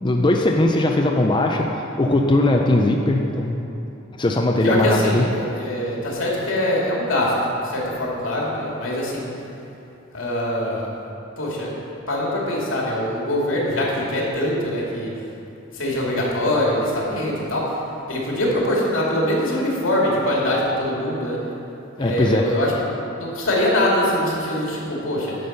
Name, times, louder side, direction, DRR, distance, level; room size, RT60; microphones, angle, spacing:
voice 1, 0.0-3.6 4.2-5.2 22.0-22.4, left 1 dB, 25° left, 1 dB, 0.5 m, -19 dB
voice 2, 4.6-7.3 7.6-9.3 10.1-10.9 11.4-11.7 12.1-15.1 15.7-17.8 18.1-21.4 22.0-25.4, left 1 dB, 80° left, -4 dB, 2.5 m, -23 dB
11.0 x 5.5 x 6.6 m, 2.9 s
head